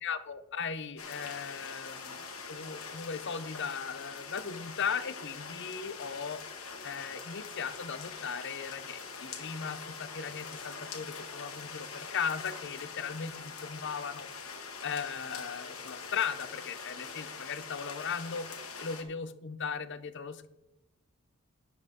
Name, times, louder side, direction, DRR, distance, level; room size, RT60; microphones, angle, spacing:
voice 1, 0.0-2.2 2.5-6.4 6.8-14.3 14.8-18.5 18.8-20.5, left 6 dB, 55° left, 12 dB, 0.7 m, -37 dB
sound 1, 1.0-19.0, left 5 dB, 70° left, 1.6 m, -43 dB
12.0 x 9.7 x 3.6 m, 0.92 s
head